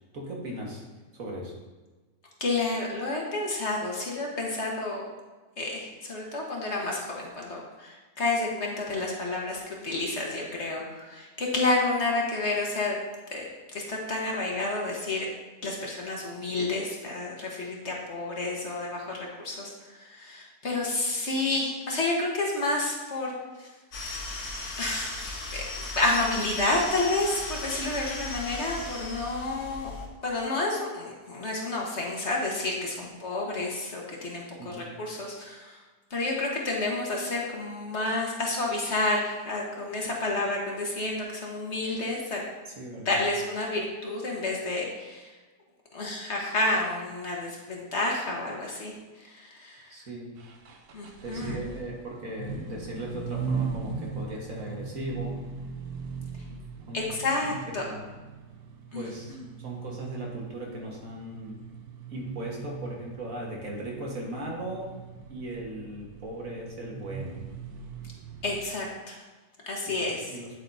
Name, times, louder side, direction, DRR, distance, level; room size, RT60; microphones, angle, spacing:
voice 1, 0.1-0.8 1.1-1.6 34.6-34.9 42.8-43.1 49.9-50.4 51.2-55.4 56.9-57.0 57.7-58.1 59.0-61.6 62.1-65.0 65.3-67.4 69.9-70.5, right 1 dB, 60° right, -2 dB, 1.9 m, -38 dB
voice 2, 2.4-5.1 5.6-13.0 13.3-15.3 15.6-23.7 24.8-29.9 30.2-35.8 36.1-42.4 43.0-45.3 45.9-49.9 50.9-51.6 56.9-57.8 58.9-59.0 59.3-59.4 68.4-69.2 69.7-70.3, left 2 dB, 50° left, -2 dB, 1.5 m, -30 dB
sound 1, 23.9-30.1, left 2 dB, 75° left, 1.7 m, -36 dB
sound 2, 50.4-68.7, right 5 dB, 80° right, 1.3 m, -39 dB
8.9 x 8.1 x 2.7 m, 1.3 s
omnidirectional pair, 1.6 m